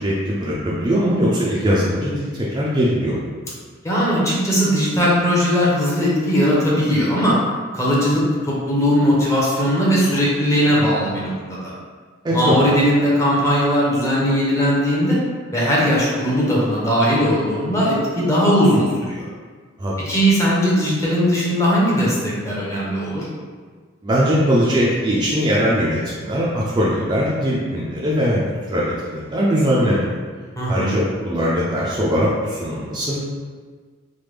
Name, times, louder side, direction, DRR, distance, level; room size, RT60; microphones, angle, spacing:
voice 1, 0.0-3.2 12.2-12.6 19.8-20.2 24.0-28.4 28.7-30.1 30.7-33.2, equal, 20° right, -6 dB, 0.4 m, -20 dB
voice 2, 3.8-7.4 7.7-11.7 12.3-15.2 15.5-19.3 20.1-23.3 30.6-30.9, equal, 15° left, -6 dB, 0.7 m, -19 dB
3.3 x 2.2 x 3.2 m, 1.5 s
head